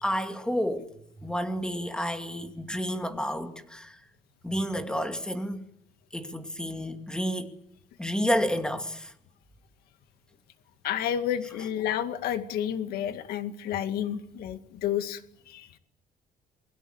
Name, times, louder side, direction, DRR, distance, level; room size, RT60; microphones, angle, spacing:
voice 1, 0.0-4.0 4.4-5.7 6.1-7.6 8.0-9.1, equal, 5° left, 2.5 m, -30 dB
voice 2, 10.8-15.2 15.5-15.7, left 10 dB, 85° left, 2.2 m, -30 dB
28.5 x 22.0 x 8.0 m
cardioid pair, 135°, 15 cm